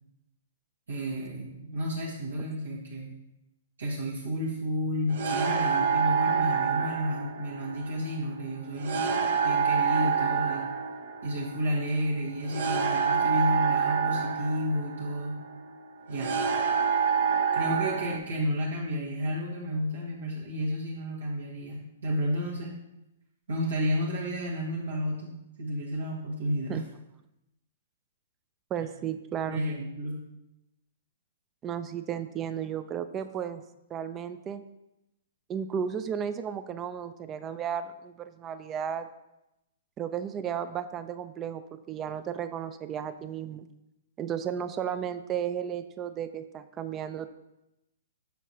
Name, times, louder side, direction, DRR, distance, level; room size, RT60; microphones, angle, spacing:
voice 1, 0.9-3.1 3.8-10.7 11.2-15.4 16.1-16.4 17.5-22.7 23.5-25.3 25.6-26.8 29.5-30.2, equal, 80° right, -6 dB, 1.2 m, -31 dB
sound 1, 5.1-18.2, right 6 dB, 65° right, 0.7 m, -28 dB
voice 2, 28.7-29.6 31.6-33.6 33.9-34.6 35.5-39.1 40.0-43.7 44.2-47.3, right 8 dB, 25° right, 11 dB, 0.3 m, -34 dB
6.2 x 5.8 x 2.7 m, 0.90 s
hypercardioid pair, 120°, 0 cm